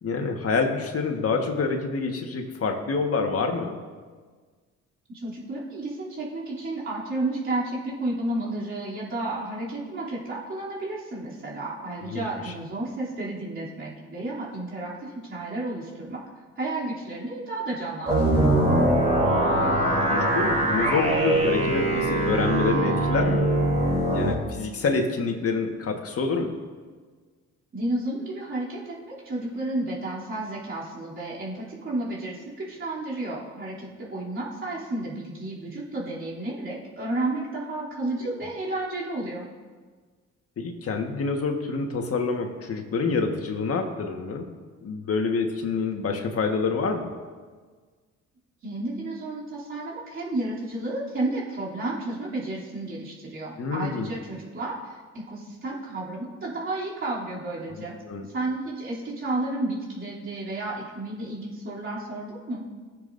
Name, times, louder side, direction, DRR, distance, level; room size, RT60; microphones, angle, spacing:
voice 1, 0.0-3.8 12.0-12.5 18.8-18.9 20.1-23.6 24.1-26.5 38.2-38.3 40.6-44.5 44.8-47.1 53.6-54.1 58.0-58.3, left 4 dB, 50° left, 3 dB, 1.5 m, -27 dB
voice 2, 5.1-16.2 16.6-18.4 27.7-39.4 48.6-55.0 55.3-57.9 58.3-62.7, right 2 dB, 40° right, -7 dB, 3.0 m, -32 dB
sound 1, 18.1-24.3, right 1 dB, 25° right, 3.4 m, -22 dB
18.0 x 7.4 x 2.7 m, 1.5 s
cardioid pair, 90°, 30 cm